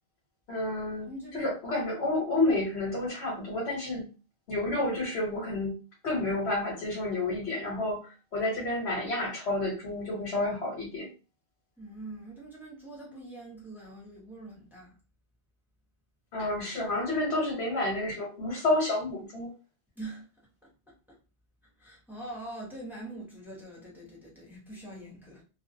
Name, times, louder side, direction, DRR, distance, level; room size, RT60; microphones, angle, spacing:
voice 1, 0.5-4.1 4.5-5.7 6.0-8.0 8.3-11.1 16.3-19.5, left 2 dB, 85° left, 1.2 m, -30 dB
voice 2, 1.1-1.5 11.8-15.0 20.0-20.3 20.9-21.0 21.8-25.4, right 1 dB, ahead, 0.9 m, -43 dB
2.3 x 2.2 x 2.7 m
omnidirectional pair, 1.1 m